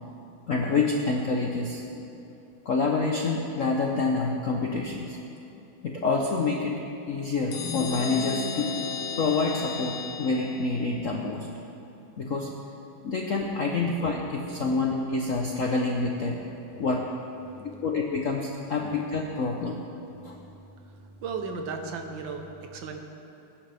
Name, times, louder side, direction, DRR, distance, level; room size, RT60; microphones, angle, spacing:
voice 1, 0.5-1.8 2.7-5.2 5.8-6.8 7.1-8.7 9.2-11.5 12.2-12.5 13.0-16.4 16.8-17.0 17.6-19.8 20.2-20.4, left 3 dB, 60° left, 0 dB, 0.8 m, -27 dB
sound 1, 7.5-11.1, left 4 dB, 80° left, 1.8 m, -34 dB
voice 2, 20.8-23.0, right 4 dB, 65° right, 4 dB, 1.6 m, -35 dB
20.5 x 10.0 x 3.4 m, 2.8 s
omnidirectional pair, 2.4 m